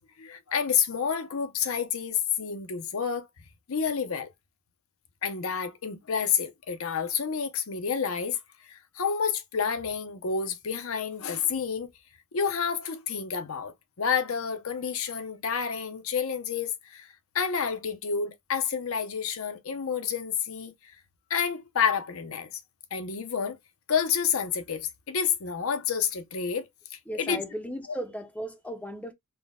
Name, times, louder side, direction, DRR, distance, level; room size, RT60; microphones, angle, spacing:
voice 1, 0.2-3.3 3.7-4.3 5.2-11.9 12.3-20.7 21.3-22.6 22.9-23.6 23.9-26.7 27.2-27.4, left 7 dB, 70° left, 0.7 m, -29 dB
voice 2, 27.1-29.1, equal, 5° left, 0.5 m, -36 dB
4.1 x 2.2 x 3.5 m
head